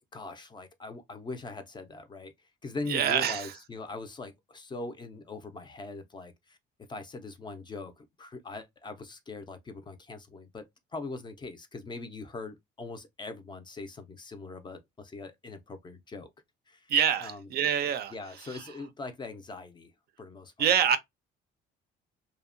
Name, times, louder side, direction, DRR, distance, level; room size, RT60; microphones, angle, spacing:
voice 1, 0.1-2.3 2.6-6.6 6.9-10.6 10.9-16.3 16.7-16.9 17.2-17.5 18.1-19.9 20.2-20.7, left 3 dB, 25° left, 0.4 m, -41 dB
voice 2, 2.9-3.5 16.9-18.1 18.5-18.6 20.6-21.0, right 8 dB, 50° right, 0.4 m, -26 dB
2.7 x 2.0 x 2.4 m
cardioid pair, 140°, 20 cm